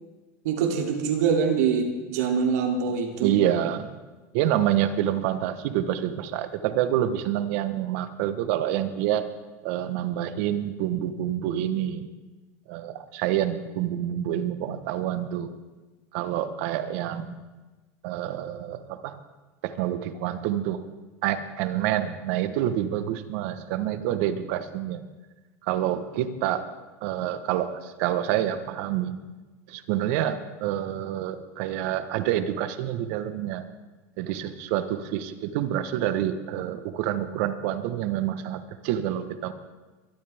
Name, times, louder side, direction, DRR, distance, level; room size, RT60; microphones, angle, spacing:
voice 1, 0.4-3.3, right 6 dB, 80° right, 1 dB, 3.0 m, -24 dB
voice 2, 3.2-3.9 4.3-9.3 9.6-12.1 12.7-15.5 16.1-17.4 18.0-19.2 19.6-20.8 21.2-25.0 25.6-26.7 27.0-29.1 29.7-33.7 34.2-39.5, right 11 dB, 65° right, 10 dB, 1.2 m, -27 dB
23.0 x 12.5 x 3.5 m, 1.2 s
supercardioid pair, 135°, 9 cm